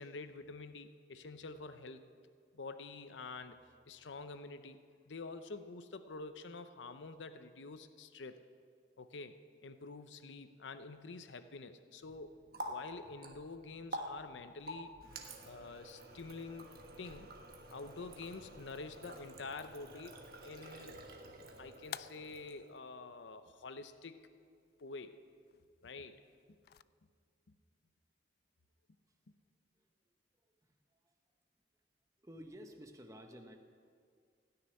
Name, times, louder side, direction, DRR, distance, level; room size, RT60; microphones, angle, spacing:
voice 1, 0.0-2.0 2.5-3.6 3.9-4.8 5.1-8.4 9.0-12.4 12.7-14.9 15.4-17.3 17.7-21.0 21.4-24.3 24.8-25.2 25.8-26.2, left 3 dB, 90° left, 10 dB, 0.7 m, -48 dB
Water tap faucet, 12.0-22.8, equal, 55° right, 1.4 m, -49 dB
sound 1, 21.4-26.8, left 10 dB, 55° left, 0.3 m, -55 dB
voice 2, 32.2-33.5, equal, 20° right, 4 dB, 1.0 m, -52 dB
16.5 x 6.7 x 9.7 m, 2.1 s
head